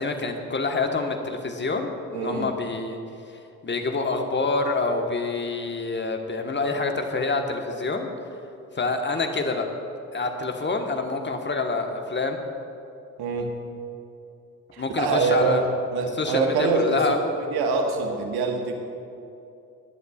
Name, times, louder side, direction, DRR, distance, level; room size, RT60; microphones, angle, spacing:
voice 1, 0.0-3.0 3.6-8.1 8.8-9.7 10.1-12.4 14.8-15.6 16.2-17.2, left 3 dB, 25° left, 4 dB, 1.4 m, -27 dB
voice 2, 2.1-2.5 13.2-13.5 14.7-17.1 17.5-18.7, right 4 dB, 55° right, 3 dB, 1.6 m, -25 dB
22.0 x 11.0 x 2.4 m, 2.7 s
figure-of-eight pair, 40°, 44 cm